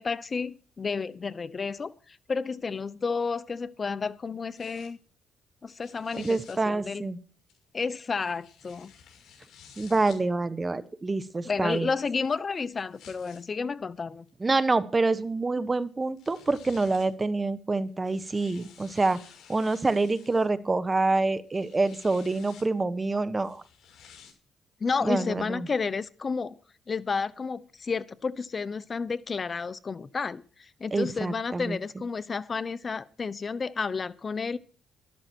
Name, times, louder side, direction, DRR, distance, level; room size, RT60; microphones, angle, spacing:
voice 1, 0.0-5.0 5.6-7.1 7.7-8.9 11.4-14.3 24.8-26.6 26.9-34.6, left 5 dB, 35° left, 17 dB, 0.7 m, -31 dB
sound 1, 4.5-4.9 5.7-6.6 7.5-10.2 11.1-13.5 14.3-14.4 15.8-15.9 16.2-17.1 17.9-20.5 21.3-22.7 23.4-24.3, left 7 dB, 65° left, 6.3 m, -53 dB
voice 2, 6.1-7.2 9.8-11.9 14.4-19.2 19.5-23.6 25.0-25.7 30.9-31.8, right 3 dB, 25° right, 14 dB, 1.3 m, -26 dB
13.0 x 12.5 x 4.5 m, 0.40 s
cardioid pair, 90°, 0 cm